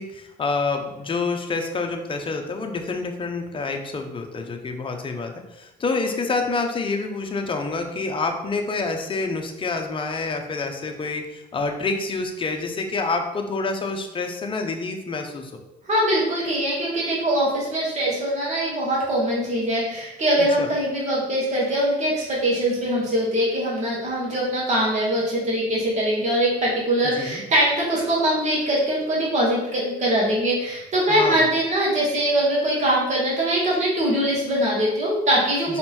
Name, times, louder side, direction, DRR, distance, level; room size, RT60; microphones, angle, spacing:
voice 1, 0.0-15.5 20.4-20.7 27.1-27.4 31.1-31.5 35.7-35.8, left 3 dB, 30° left, 4 dB, 0.9 m, -27 dB
voice 2, 15.9-35.8, right 1 dB, 45° right, -5 dB, 2.3 m, -22 dB
5.3 x 4.2 x 4.3 m, 0.91 s
cardioid pair, 110°, 17 cm